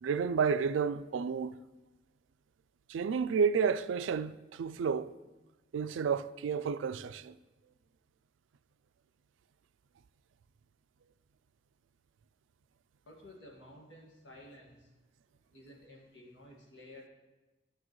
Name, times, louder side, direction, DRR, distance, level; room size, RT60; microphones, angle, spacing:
voice 1, 0.0-1.6 2.9-5.1 5.7-7.4, right 6 dB, 75° right, 0.3 m, -31 dB
voice 2, 13.1-14.9 15.5-17.1, left 1 dB, 70° left, 1.9 m, -53 dB
11.0 x 6.2 x 3.1 m
head